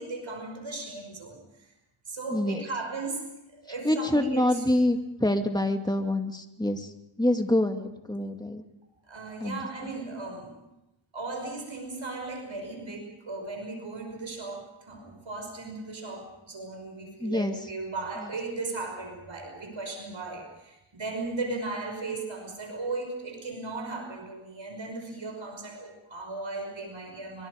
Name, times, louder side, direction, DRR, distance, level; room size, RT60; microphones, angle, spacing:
voice 1, 0.0-1.7 2.1-4.5 4.8-5.0 9.0-10.6 11.1-27.5, right 3 dB, 65° right, 3 dB, 5.9 m, -37 dB
voice 2, 2.3-2.7 3.8-6.9 7.2-8.6 9.4-9.9 17.2-17.6 18.2-18.3, left 1 dB, 10° left, 5 dB, 2.3 m, -26 dB
24.5 x 24.0 x 5.2 m, 0.91 s
wide cardioid pair, 80°, 49 cm